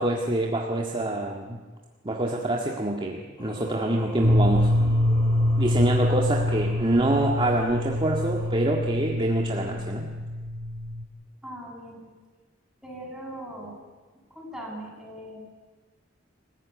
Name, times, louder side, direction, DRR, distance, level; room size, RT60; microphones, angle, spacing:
voice 1, 0.0-1.6 2.0-4.7 5.6-10.1, right 1 dB, 25° right, 0 dB, 1.9 m, -26 dB
Singing, 3.4-8.5, equal, 20° left, 5.5 m, -43 dB
sound 1, 4.2-11.1, left 1 dB, 85° right, 2.0 m, -25 dB
voice 2, 11.4-12.0 12.8-13.8 14.3-15.4, right 1 dB, 5° right, -3 dB, 7.5 m, -39 dB
26.0 x 15.5 x 9.7 m, 1.4 s
head